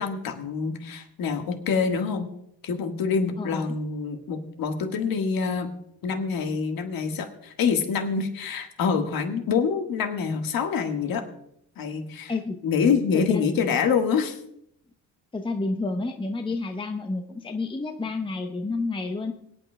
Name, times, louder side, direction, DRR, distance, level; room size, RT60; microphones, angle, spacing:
voice 1, 0.0-2.3 2.6-5.7 6.0-11.2 11.8-12.3 12.6-14.4, left 6 dB, 60° left, 5 dB, 1.6 m, -26 dB
voice 2, 3.4-3.7 12.3-12.6 13.1-13.4 15.3-19.3, left 3 dB, 15° left, 5 dB, 0.8 m, -30 dB
26.0 x 8.9 x 2.2 m, 0.75 s
cardioid pair, 90°, 39 cm